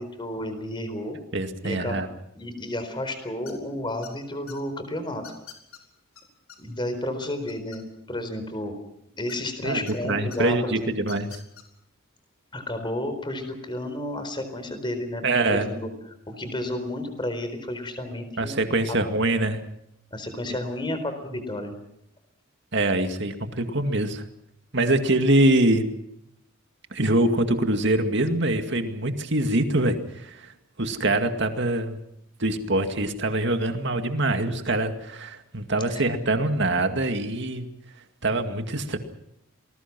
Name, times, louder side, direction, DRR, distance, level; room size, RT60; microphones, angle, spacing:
voice 1, 0.0-1.2 1.6-2.0 2.3-5.2 6.6-8.7 9.2-11.1 12.5-15.9 16.3-18.5 20.1-21.8 35.9-36.0, left 1 dB, 20° left, 9 dB, 4.2 m, -32 dB
voice 2, 1.3-2.1 9.6-11.3 15.2-15.7 18.4-19.6 22.7-24.2 24.7-25.8 26.9-30.5 30.8-32.0 32.4-37.7 38.2-39.0, right 2 dB, 55° right, 7 dB, 2.2 m, -24 dB
sound 1, 3.5-3.7 4.0-4.6 5.2-5.8 6.2-6.3 6.5-6.6 6.9-8.1 9.3-9.9 10.3-10.4 11.0-11.6, left 8 dB, 85° left, 4.8 m, -45 dB
28.0 x 20.5 x 6.1 m, 0.77 s
head